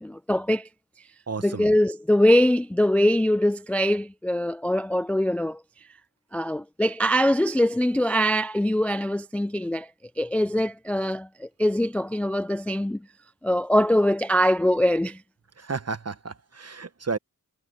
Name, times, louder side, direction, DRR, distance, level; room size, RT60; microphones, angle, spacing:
voice 1, 0.0-0.7 1.4-5.6 6.3-9.9 10.2-13.0 13.4-15.2, equal, 5° left, 0.3 m, -23 dB
voice 2, 1.3-1.7 15.6-17.2, right 4 dB, 45° right, 1.1 m, -32 dB
wide cardioid pair, 55°, 36 cm